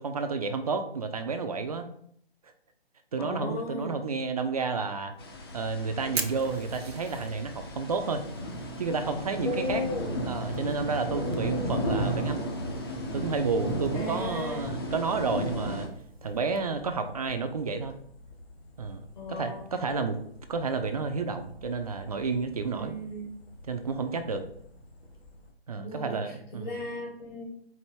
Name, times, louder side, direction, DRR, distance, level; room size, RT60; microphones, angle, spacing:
voice 1, 0.0-1.9 3.1-5.1 5.5-8.3 8.8-9.8 10.2-12.6 13.1-15.9 16.2-18.0 18.8-20.2 20.5-23.0 23.7-24.4 25.7-26.8, right 4 dB, 40° right, 7 dB, 0.4 m, -31 dB
voice 2, 3.2-4.0 9.4-10.1 11.1-11.9 13.9-14.6 19.2-19.6 22.7-23.3 25.7-27.4, left 2 dB, 45° left, -2 dB, 1.1 m, -35 dB
Fire, 5.1-16.6, right 5 dB, 80° right, 0.7 m, -45 dB
sound 1, 5.2-15.9, equal, 25° left, 0.5 m, -34 dB
sound 2, 7.3-25.5, left 1 dB, 80° left, 1.1 m, -52 dB
4.6 x 2.6 x 4.2 m, 0.65 s
figure-of-eight pair, 135°, 30 cm